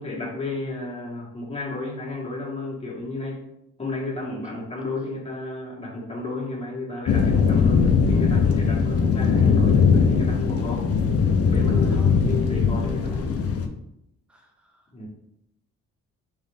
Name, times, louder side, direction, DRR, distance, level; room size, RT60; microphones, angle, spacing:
voice 1, 0.0-3.4 3.8-10.9 11.4-13.3 14.9-15.1, left 2 dB, 20° left, -3 dB, 1.4 m, -32 dB
sound 1, 7.1-13.7, left 5 dB, 50° left, 0.6 m, -20 dB
voice 2, 12.8-13.2 14.3-14.4, equal, 5° right, 1 dB, 0.8 m, -42 dB
3.8 x 3.2 x 3.5 m, 0.80 s
cardioid pair, 90°, 30 cm